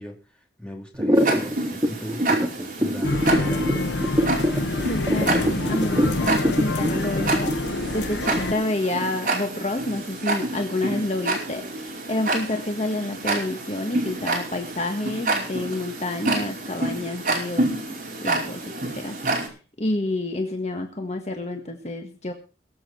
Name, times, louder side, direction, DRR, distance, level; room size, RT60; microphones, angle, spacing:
voice 1, 0.0-3.9, equal, 5° left, 1 dB, 3.2 m, -39 dB
sound 1, 0.9-8.8, equal, 20° right, 2.0 m, -24 dB
Tick-tock, 1.1-19.5, right 2 dB, 50° right, 4.9 m, -29 dB
sound 2, 3.0-8.5, left 2 dB, 85° left, 1.2 m, -27 dB
voice 2, 4.8-7.5 7.9-17.7 18.2-18.6 18.9-19.2 19.8-22.3, left 2 dB, 35° left, 4 dB, 1.6 m, -28 dB
22.0 x 7.8 x 4.4 m, 0.35 s
head